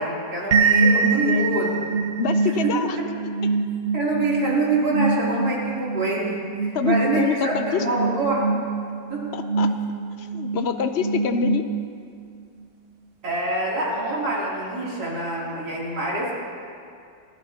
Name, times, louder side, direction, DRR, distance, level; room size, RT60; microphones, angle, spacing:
voice 1, 0.0-1.7 2.6-2.8 3.9-8.5 9.1-9.3 13.2-16.4, right 2 dB, 65° right, -6 dB, 3.7 m, -25 dB
sound 1, 0.5-12.1, right 4 dB, 80° right, 0.5 m, -25 dB
voice 2, 1.0-1.5 2.2-3.0 6.7-7.8 9.3-9.7 10.2-11.7, left 6 dB, 65° left, 7 dB, 0.6 m, -26 dB
28.0 x 12.0 x 2.9 m, 2.3 s
omnidirectional pair, 1.9 m